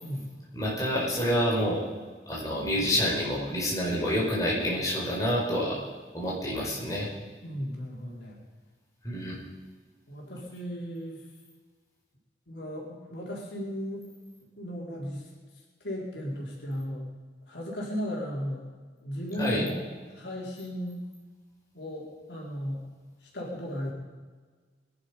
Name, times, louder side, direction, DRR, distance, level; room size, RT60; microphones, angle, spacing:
voice 1, 0.5-1.8 2.3-5.8 6.1-7.1 9.0-9.3 19.4-19.6, equal, 20° left, -5 dB, 5.3 m, -28 dB
voice 2, 7.4-8.4 10.1-11.2 12.5-14.1 14.6-15.3 15.8-17.1 17.5-18.6 19.0-19.9 20.1-21.0 21.7-22.8 23.2-23.9, equal, 80° left, -3 dB, 4.4 m, -35 dB
23.0 x 11.0 x 5.3 m, 1.5 s
head